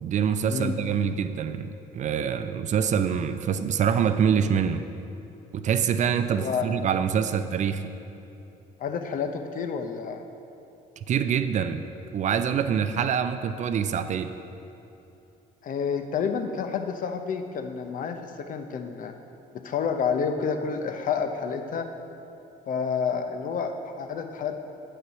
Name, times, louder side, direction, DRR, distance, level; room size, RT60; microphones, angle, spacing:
voice 1, 0.0-4.8 5.5-7.8 11.1-11.8 12.1-14.3, right 7 dB, 45° right, 10 dB, 0.4 m, -25 dB
voice 2, 6.3-6.7 8.8-10.2 15.6-19.1 19.5-21.9 22.7-24.6, left 6 dB, 55° left, 6 dB, 0.7 m, -29 dB
7.6 x 6.7 x 5.6 m, 2.9 s
cardioid pair, 110°, 17 cm